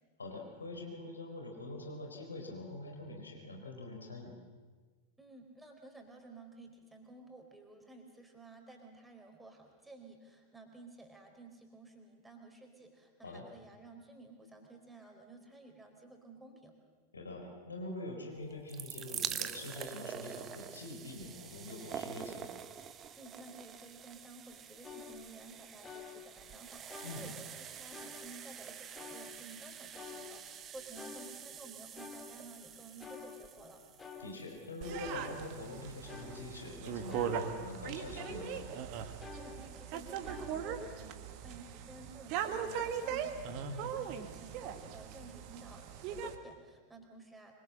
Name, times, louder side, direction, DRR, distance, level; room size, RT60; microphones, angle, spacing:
voice 1, 0.2-4.3 13.2-13.4 17.1-22.5 27.0-27.3 34.2-38.7 43.6-43.9, left 2 dB, 75° left, 2 dB, 4.4 m, -44 dB
voice 2, 5.2-16.7 23.2-33.8 39.4-47.5, right 2 dB, 5° right, 2 dB, 4.3 m, -54 dB
sound 1, 18.4-35.5 36.2-36.3 36.5-36.6, right 8 dB, 25° right, 1.3 m, -46 dB
sound 2, 24.8-25.5 25.8-26.6 26.9-28.6 28.9-29.7 29.9-32.7 33.0-34.7 35.0-37.9 38.1-38.8 39.2-40.8, left 5 dB, 20° left, 2.8 m, -51 dB
sound 3, 34.8-46.3, right 8 dB, 40° right, 1.9 m, -40 dB
25.0 x 24.5 x 7.7 m, 1.4 s
figure-of-eight pair, 90°, 0 cm